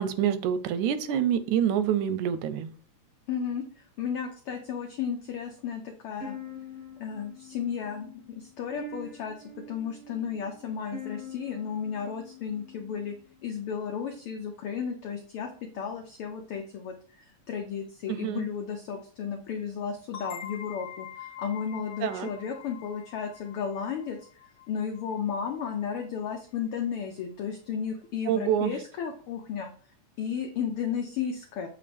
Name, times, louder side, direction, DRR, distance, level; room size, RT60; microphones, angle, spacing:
voice 1, 0.0-2.7 18.1-18.5 22.0-22.3 28.3-28.7, right 9 dB, 90° right, 12 dB, 2.1 m, -26 dB
voice 2, 3.3-6.4 7.0-9.3 9.7-13.1 13.4-15.5 15.7-24.2 24.7-29.7 30.2-31.7, left 7 dB, 85° left, 4 dB, 1.2 m, -34 dB
sound 1, 6.2-13.3, left 2 dB, 5° left, 1.1 m, -44 dB
sound 2, 20.1-25.6, left 10 dB, 55° left, 1.4 m, -45 dB
7.5 x 4.1 x 3.4 m, 0.44 s
omnidirectional pair, 3.4 m